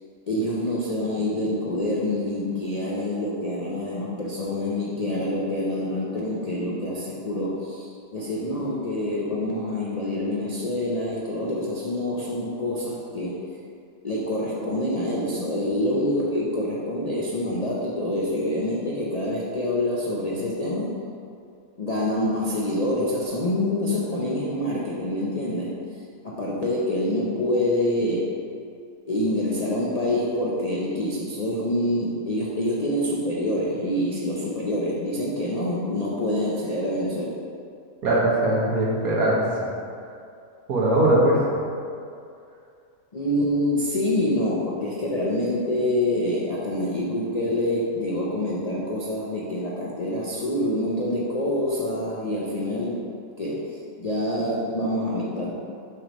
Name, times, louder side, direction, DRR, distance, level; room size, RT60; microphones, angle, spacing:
voice 1, 0.3-13.5 14.0-21.0 21.8-25.7 26.2-28.4 29.1-37.4 43.1-53.1 53.4-55.5, left 1 dB, 45° left, -6 dB, 0.5 m, -26 dB
voice 2, 38.0-39.7 40.7-41.4, right 1 dB, 75° right, -4 dB, 1.7 m, -20 dB
7.0 x 3.3 x 5.1 m, 2.5 s
omnidirectional pair, 1.6 m